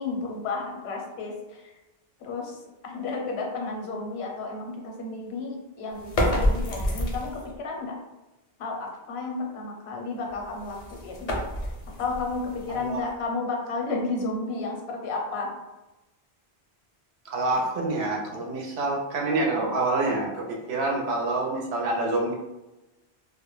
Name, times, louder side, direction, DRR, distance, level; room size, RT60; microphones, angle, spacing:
voice 1, 0.0-1.6 2.2-2.6 2.8-7.9 8.6-11.3 12.0-15.5, left 3 dB, 80° left, 1 dB, 0.8 m, -32 dB
sound 1, 5.9-7.6 10.3-13.2, left 1 dB, 50° left, 0.5 m, -29 dB
voice 2, 12.7-13.0 17.2-22.3, right 2 dB, 80° right, -1 dB, 0.8 m, -27 dB
2.1 x 2.1 x 3.0 m, 1.0 s
omnidirectional pair, 1.1 m